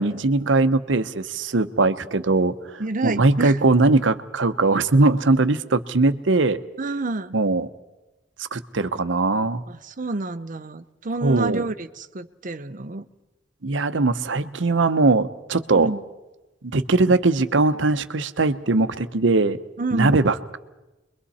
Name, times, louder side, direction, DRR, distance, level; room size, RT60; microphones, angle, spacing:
voice 1, 0.0-6.6 7.3-7.7 8.5-9.6 11.2-11.6 13.6-15.9 16.7-19.6 19.9-20.6, right 3 dB, 90° right, 11 dB, 0.9 m, -20 dB
voice 2, 2.8-3.6 6.8-7.4 9.7-13.1 15.7-16.0 19.8-20.1, right 2 dB, 45° right, 11 dB, 0.8 m, -28 dB
29.5 x 22.5 x 4.2 m, 1.1 s
head